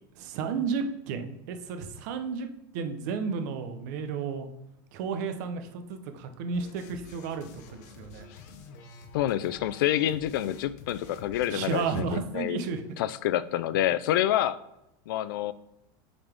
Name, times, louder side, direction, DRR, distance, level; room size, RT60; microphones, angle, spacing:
voice 1, 0.2-2.5 2.7-4.5 4.9-8.3 11.5-12.8, right 5 dB, 55° right, 7 dB, 0.7 m, -32 dB
sound 1, 6.5-12.1, left 5 dB, 50° left, 0.7 m, -49 dB
voice 2, 9.1-12.6 13.0-14.6 15.1-15.5, left 12 dB, 75° left, 16 dB, 0.4 m, -27 dB
8.8 x 4.0 x 3.5 m, 0.86 s
supercardioid pair, 170°, 11 cm